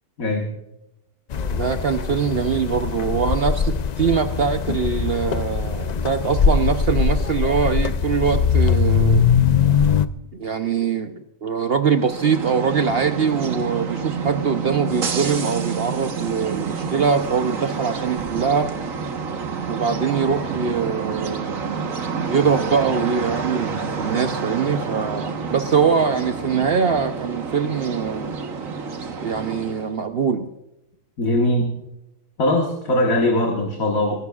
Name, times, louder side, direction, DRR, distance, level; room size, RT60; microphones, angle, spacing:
voice 1, 0.2-0.5 31.2-31.7 32.4-34.2, left 1 dB, 85° left, 2 dB, 2.0 m, -20 dB
sound 1, 1.3-10.1, left 6 dB, 60° left, 0.4 m, -21 dB
voice 2, 1.5-9.2 10.3-18.7 19.7-22.0 22.2-28.3 29.2-30.5, right 6 dB, 50° right, 7 dB, 0.9 m, -23 dB
sound 2, 11.9-30.0, right 5 dB, 75° right, 1.7 m, -28 dB
24.0 x 12.5 x 2.4 m, 0.90 s
omnidirectional pair, 1.4 m